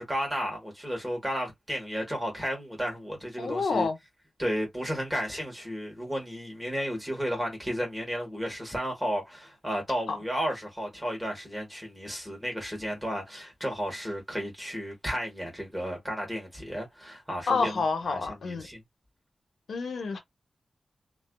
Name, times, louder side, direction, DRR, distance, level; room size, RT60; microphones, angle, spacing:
voice 1, 0.0-3.9 4.4-18.8, equal, 10° right, 1.2 m, -33 dB
voice 2, 3.4-4.0 10.1-10.2 17.5-18.7 19.7-20.2, left 4 dB, 85° left, 0.7 m, -28 dB
2.4 x 2.3 x 2.2 m
wide cardioid pair, 155°, 0 cm